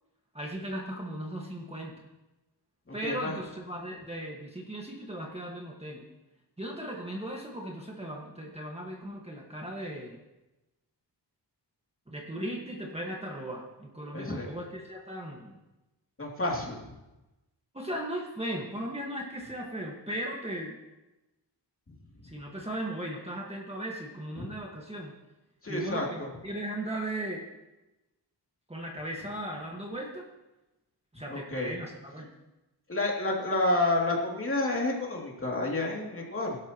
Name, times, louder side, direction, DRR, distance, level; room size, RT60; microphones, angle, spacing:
voice 1, 0.3-1.9 2.9-6.0 6.6-10.2 12.1-15.6 17.7-20.8 22.2-25.1 25.7-27.4 28.7-30.2 31.1-32.3, right 1 dB, 15° right, -1 dB, 1.6 m, -37 dB
voice 2, 2.9-3.4 14.1-14.5 16.2-16.8 24.4-24.5 25.6-26.3 31.3-31.7 32.9-36.6, left 2 dB, 30° left, -2 dB, 2.7 m, -30 dB
23.0 x 12.5 x 3.0 m, 1.0 s
wide cardioid pair, 145°, 43 cm